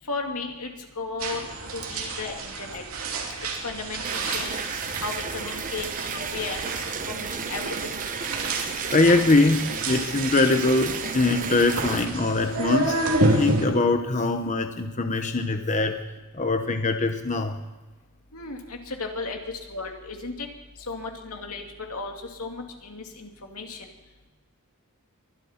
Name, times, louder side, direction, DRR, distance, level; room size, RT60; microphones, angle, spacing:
voice 1, 0.1-1.4 1.7-2.8 3.6-4.5 5.0-5.9 6.1-6.6 6.9-7.9 18.3-19.4 19.7-20.5 20.9-21.6 21.9-23.9, left 3 dB, 85° left, 2 dB, 2.7 m, -35 dB
sound 1, 1.2-13.7, right 2 dB, 80° right, 3.1 m, -30 dB
sound 2, 4.0-12.1, right 5 dB, 40° right, 0.9 m, -34 dB
voice 2, 8.9-13.0 13.3-16.1 16.3-17.6, left 3 dB, 35° left, 6 dB, 0.9 m, -23 dB
23.5 x 12.0 x 4.4 m, 1.2 s
head